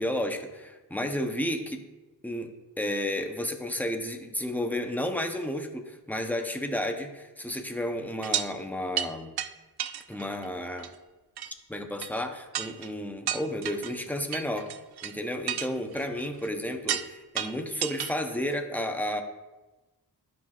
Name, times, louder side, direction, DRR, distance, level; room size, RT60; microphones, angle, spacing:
voice 1, 0.0-1.8 2.2-9.3 10.1-10.9 11.7-14.7 15.0-19.2, left 1 dB, 5° left, 4 dB, 0.8 m, -32 dB
sound 1, 8.2-8.5 9.0-9.1 9.4-9.5 9.8-10.5 10.8-10.9 11.4-11.5 12.0-12.1 12.5-12.9 13.3-13.9 14.3-15.1 15.5-16.5 16.9-17.1 17.4-18.1 18.5-18.6, right 10 dB, 70° right, 0.5 m, -32 dB
12.0 x 5.8 x 2.5 m, 1.1 s
wide cardioid pair, 85°, 40 cm